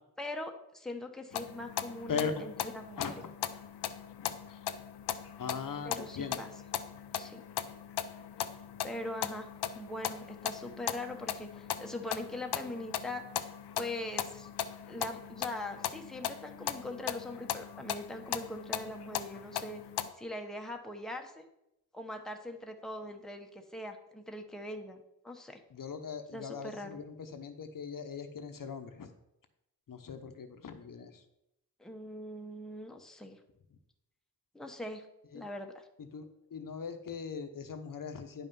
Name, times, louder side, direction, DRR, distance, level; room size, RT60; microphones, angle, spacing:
voice 1, 0.2-3.1 5.8-6.5 7.1-7.4 8.8-9.5 9.7-13.2 13.8-14.5 14.9-19.8 20.2-21.5 21.9-25.6 26.3-27.0 31.8-33.4 34.5-35.1 35.3-35.9, left 1 dB, ahead, 3 dB, 1.0 m, -41 dB
sound 1, 1.3-20.1, left 10 dB, 90° left, 0.7 m, -39 dB
voice 2, 2.1-2.4 3.0-3.2 4.2-4.6 5.4-6.4 25.7-29.1 29.9-31.2 35.3-35.5 36.0-38.5, left 6 dB, 55° left, 7 dB, 1.0 m, -40 dB
10.0 x 5.6 x 5.5 m, 0.84 s
wide cardioid pair, 120°, 39 cm